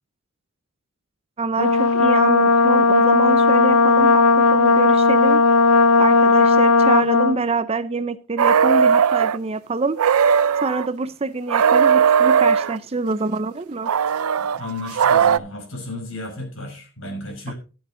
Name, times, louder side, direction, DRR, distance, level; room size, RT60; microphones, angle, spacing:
voice 1, 1.4-5.4 6.0-10.0 10.6-13.9 17.5-17.6, right 3 dB, 30° right, 14 dB, 0.5 m, -25 dB
Brass instrument, 1.6-7.4, left 3 dB, 90° left, 0.6 m, -15 dB
sound 1, 8.4-9.4 10.0-10.9 11.5-12.8 13.9-15.4, right 7 dB, 85° right, 0.4 m, -17 dB
voice 2, 14.5-17.5, left 2 dB, 65° left, 1 dB, 5.4 m, -33 dB
11.5 x 9.3 x 3.8 m, 0.34 s
head